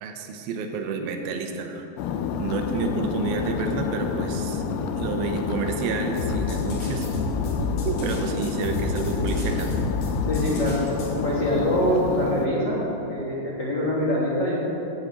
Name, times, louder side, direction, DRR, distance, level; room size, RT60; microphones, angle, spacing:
voice 1, 0.0-1.9 2.4-4.6 5.0-7.1 7.9-9.8, right 5 dB, 80° right, 5 dB, 2.6 m, -30 dB
sound 1, 2.0-12.5, left 6 dB, 90° left, 2.5 m, -29 dB
sound 2, 6.2-11.1, left 2 dB, 70° left, 4.0 m, -29 dB
voice 2, 10.3-10.8 11.2-14.6, equal, 55° left, -7 dB, 1.3 m, -24 dB
12.0 x 5.0 x 8.1 m, 2.9 s
omnidirectional pair, 4.3 m